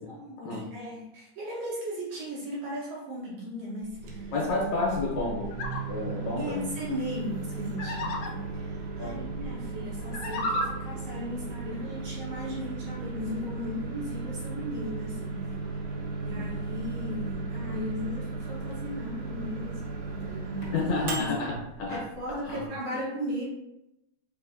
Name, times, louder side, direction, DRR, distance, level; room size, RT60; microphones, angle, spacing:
voice 1, 0.1-4.3 6.4-15.5 16.2-21.3 21.9-23.5, equal, 70° right, -6 dB, 2.1 m, -37 dB
Microwave oven, 3.9-22.7, right 3 dB, 85° right, 2.2 m, -36 dB
voice 2, 4.3-5.5 5.9-6.7 9.0-9.2 15.9-16.0 16.3-16.5 20.7-22.0 22.4-22.7, left 3 dB, 75° left, -2 dB, 2.0 m, -30 dB
sound 1, 5.5-5.8 7.8-8.3 10.0-10.7, left 1 dB, 90° left, 2.1 m, -31 dB
5.1 x 2.6 x 2.5 m, 0.88 s
omnidirectional pair, 3.5 m